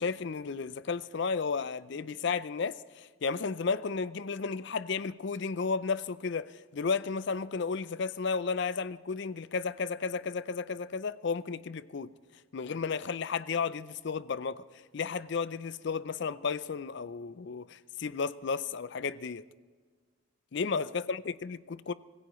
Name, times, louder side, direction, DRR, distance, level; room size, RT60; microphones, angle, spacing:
voice 1, 0.0-12.1 12.5-14.6 14.9-19.4 20.5-21.9, left 5 dB, 55° left, 0.5 m, -33 dB
25.0 x 16.5 x 3.1 m
head